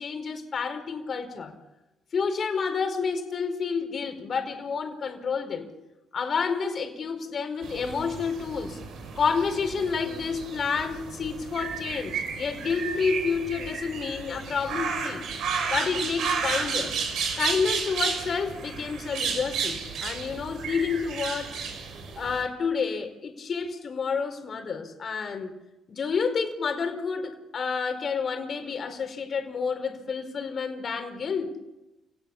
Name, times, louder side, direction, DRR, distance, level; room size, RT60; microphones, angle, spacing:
voice 1, 0.0-1.5 2.1-5.7 6.1-8.8 9.1-15.2 15.7-16.9 17.4-21.6 22.2-25.6 25.9-31.5, left 5 dB, 50° left, 6 dB, 4.7 m, -29 dB
sound 1, 7.6-22.4, right 5 dB, 75° right, 5.9 m, -32 dB
29.0 x 18.5 x 7.4 m, 0.99 s
cardioid pair, 90°, 0 cm